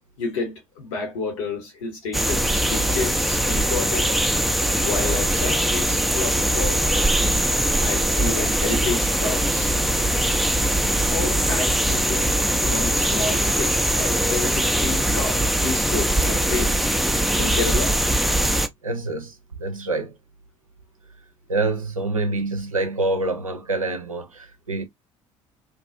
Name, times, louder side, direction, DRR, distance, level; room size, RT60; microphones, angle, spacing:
voice 1, 0.2-4.3 4.8-7.0 7.8-9.8 11.1-12.3 12.6-16.8 17.4-18.0, left 4 dB, 70° left, 1.1 m, -30 dB
sound 1, 2.1-18.7, right 1 dB, ahead, 0.4 m, -21 dB
voice 2, 18.8-20.1 21.5-24.9, right 2 dB, 85° right, 0.5 m, -26 dB
2.7 x 2.3 x 2.5 m
figure-of-eight pair, 60°, 17 cm